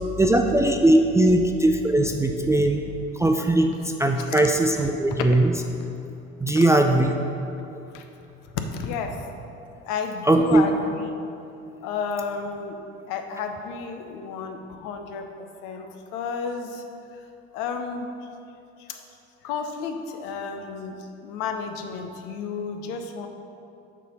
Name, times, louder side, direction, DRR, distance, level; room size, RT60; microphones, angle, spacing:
voice 1, 0.2-2.8 3.2-3.7 4.0-5.5 6.4-7.1 10.3-10.6, right 1 dB, 10° right, 3 dB, 0.3 m, -19 dB
voice 2, 8.7-9.1 9.9-11.1 11.8-12.8 13.1-16.8 17.5-18.1 18.9-19.0 19.4-21.0 21.2-23.3, left 5 dB, 70° left, 5 dB, 0.7 m, -32 dB
6.6 x 3.3 x 5.2 m, 2.7 s
hypercardioid pair, 60°, 33 cm